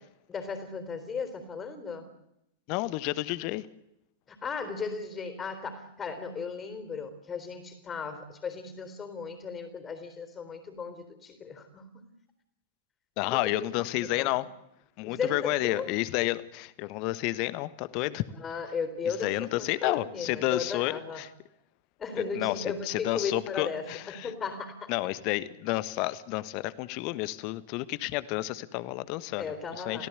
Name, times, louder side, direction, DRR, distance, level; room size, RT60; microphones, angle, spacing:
voice 1, 0.3-2.1 4.3-12.1 13.3-14.4 15.0-15.9 18.3-21.2 22.0-24.9 29.4-30.1, left 5 dB, 20° left, 7 dB, 3.9 m, -36 dB
voice 2, 2.7-3.7 13.2-14.5 15.0-18.2 19.2-21.3 22.3-24.3 24.9-29.5 29.8-30.1, left 18 dB, 45° left, 16 dB, 1.4 m, -30 dB
30.0 x 17.5 x 8.3 m, 0.84 s
figure-of-eight pair, 90°, 0 cm